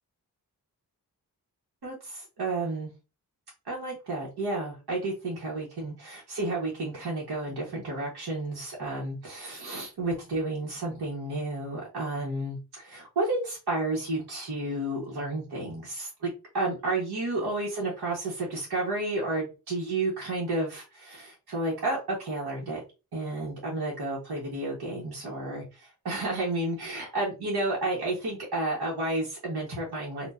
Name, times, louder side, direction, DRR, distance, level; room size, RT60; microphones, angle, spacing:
voice 1, 1.8-2.9 3.6-22.8 23.1-30.3, right 2 dB, 80° right, -4 dB, 1.3 m, -31 dB
4.4 x 2.5 x 2.6 m, 0.30 s
wide cardioid pair, 130°, 38 cm